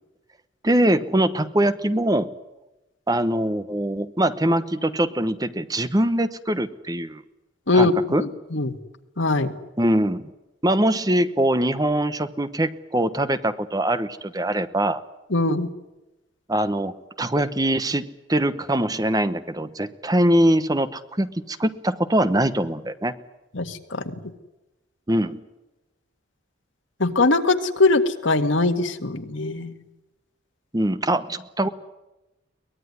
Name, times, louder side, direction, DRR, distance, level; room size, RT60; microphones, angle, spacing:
voice 1, 0.6-2.3 3.1-7.2 7.7-8.2 9.8-10.3 10.6-15.0 16.5-23.1 25.1-25.4 30.7-31.7, right 1 dB, 20° right, 12 dB, 1.0 m, -22 dB
voice 2, 8.2-8.7 9.2-9.5 15.3-15.7 23.6-24.0 27.0-29.7, left 3 dB, 75° left, 8 dB, 1.9 m, -21 dB
23.5 x 19.5 x 9.6 m, 1.0 s
head